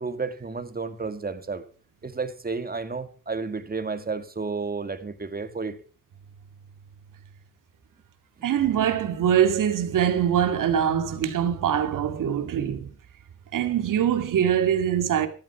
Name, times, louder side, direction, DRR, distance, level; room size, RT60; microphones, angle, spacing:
voice 1, 0.0-1.6 2.0-5.8 8.4-8.5, right 4 dB, 30° right, 2.0 m, -32 dB
voice 2, 8.4-12.9 13.5-15.3, right 9 dB, 80° right, 2.3 m, -23 dB
13.5 x 13.0 x 5.9 m
cardioid pair, 90°, 31 cm